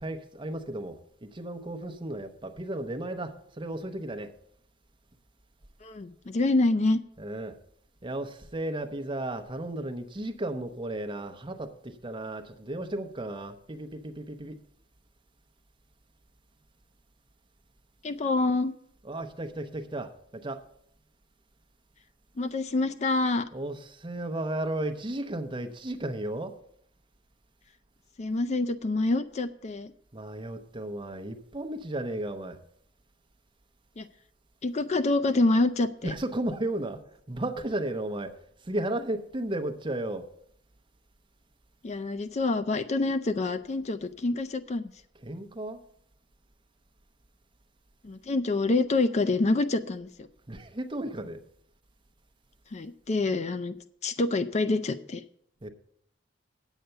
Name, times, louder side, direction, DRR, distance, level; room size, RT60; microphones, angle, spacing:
voice 1, 0.0-4.3 7.2-7.6 8.0-14.6 19.0-20.6 23.5-26.5 30.1-32.6 36.0-37.0 37.3-38.3 38.7-40.3 45.2-45.8 50.5-51.4 55.6-55.7, right 1 dB, 25° right, 6 dB, 0.8 m, -34 dB
voice 2, 5.8-7.0 18.0-18.7 22.4-23.5 28.2-29.9 34.0-34.1 34.6-36.1 41.8-44.9 48.0-50.1 52.7-53.8 54.0-55.2, left 2 dB, 35° left, 11 dB, 0.4 m, -26 dB
9.1 x 8.1 x 5.6 m, 0.68 s
head